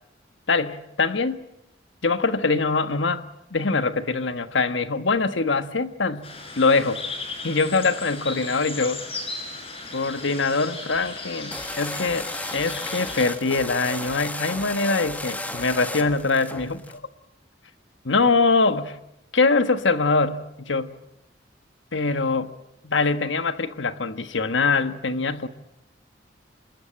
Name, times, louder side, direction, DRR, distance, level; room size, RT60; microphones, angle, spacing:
voice 1, 0.5-1.4 2.0-3.2 3.5-6.3 6.6-7.0 7.4-9.0 9.9-17.0 18.0-19.0 19.3-20.9 21.9-22.5 22.8-25.5, left 3 dB, 75° left, 1.4 m, -23 dB
sound 1, 6.2-13.3, left 3 dB, 30° left, 5.8 m, -36 dB
sound 2, 11.5-17.0, left 1 dB, 10° left, 1.6 m, -34 dB
27.0 x 21.0 x 8.8 m
head